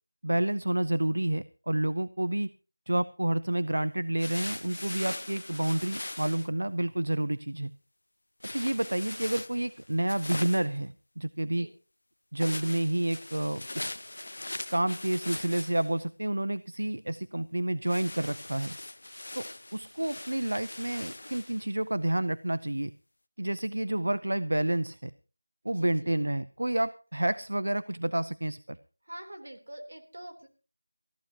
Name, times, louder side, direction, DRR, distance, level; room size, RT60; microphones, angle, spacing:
voice 1, 0.2-2.5 2.9-7.7 8.5-11.7 12.3-14.0 14.7-18.7 19.4-19.5 19.7-22.9 23.4-25.1 25.6-28.8, right 1 dB, 85° right, 15 dB, 0.6 m, -29 dB
sound 1, 4.2-6.5 8.4-10.8 12.4-16.0 17.9-21.7, left 2 dB, 60° left, 0.7 m, -40 dB
voice 2, 25.7-26.1 29.0-30.5, right 1 dB, 65° right, 5 dB, 3.4 m, -45 dB
20.5 x 14.5 x 2.9 m, 0.33 s
figure-of-eight pair, 175°, 0 cm